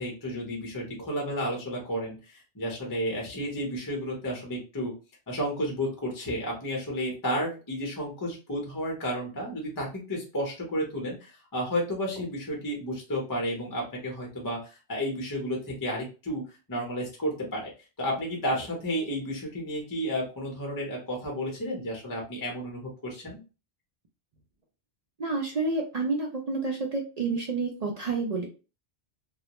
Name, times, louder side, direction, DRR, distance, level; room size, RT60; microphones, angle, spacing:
voice 1, 0.0-4.9 5.3-16.4 16.7-17.7 18.0-23.4, equal, 20° left, -2 dB, 0.7 m, -32 dB
voice 2, 25.2-28.5, right 3 dB, 50° right, 1 dB, 0.5 m, -29 dB
2.3 x 2.0 x 2.8 m, 0.32 s
omnidirectional pair, 1.1 m